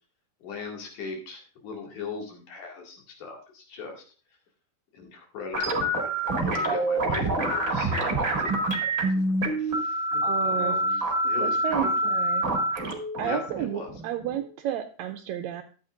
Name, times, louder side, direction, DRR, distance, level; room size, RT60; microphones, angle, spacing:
voice 1, 0.4-4.0 4.9-8.9 9.6-12.2 13.2-13.9, left 4 dB, 75° left, 0 dB, 3.8 m, -39 dB
sound 1, 5.5-14.5, right 1 dB, 30° right, 2.1 m, -26 dB
voice 2, 10.2-11.0 11.4-12.4 13.2-15.6, right 10 dB, 80° right, 6 dB, 1.8 m, -32 dB
13.0 x 8.9 x 2.5 m, 0.37 s
omnidirectional pair, 3.6 m